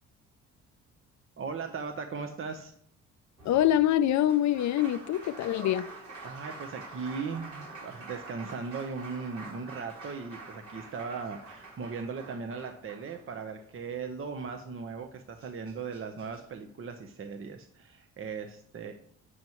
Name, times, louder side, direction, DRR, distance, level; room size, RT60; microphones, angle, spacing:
voice 1, 1.4-2.7 6.2-18.9, right 5 dB, 45° right, 0.9 m, -38 dB
voice 2, 3.4-5.9, left 12 dB, 70° left, 0.5 m, -25 dB
Applause, 3.4-13.6 15.0-15.1 15.4-16.4, right 3 dB, 70° right, 4.1 m, -46 dB
11.5 x 7.8 x 3.1 m
cardioid pair, 90°, 30 cm